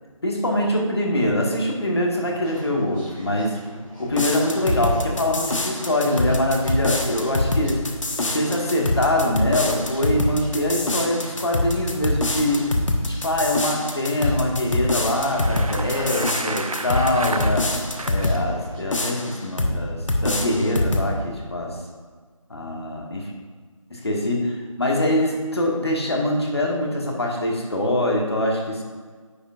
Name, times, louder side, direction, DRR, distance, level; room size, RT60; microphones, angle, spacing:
voice 1, 0.2-3.6 4.0-7.8 8.2-12.7 13.0-17.7 18.0-21.8 22.5-23.2 23.9-28.8, left 1 dB, 50° left, 0 dB, 1.7 m, -24 dB
sound 1, 2.1-18.8, equal, 5° right, 1.9 m, -42 dB
sound 2, 4.1-18.4 18.9-19.8 20.1-21.1, left 1 dB, 65° left, 1.2 m, -25 dB
Bicycle, 15.1-18.4, right 3 dB, 80° right, 0.6 m, -32 dB
10.0 x 8.0 x 2.5 m, 1.5 s
figure-of-eight pair, 175°, 18 cm